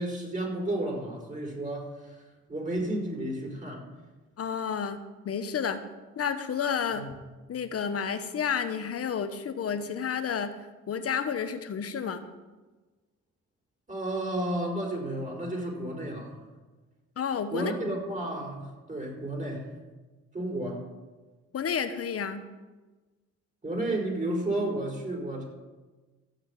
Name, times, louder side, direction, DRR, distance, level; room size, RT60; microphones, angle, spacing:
voice 1, 0.0-2.2 2.5-3.8 6.9-7.3 13.9-16.3 17.5-19.6 20.3-20.8 23.6-25.4, right 1 dB, 25° right, -1 dB, 4.7 m, -32 dB
voice 2, 4.4-5.8 6.2-7.1 7.5-10.5 10.9-12.2 17.2-17.7 21.5-22.4, left 7 dB, 50° left, 10 dB, 1.2 m, -31 dB
14.0 x 6.1 x 8.5 m, 1.2 s
cardioid pair, 90°, 30 cm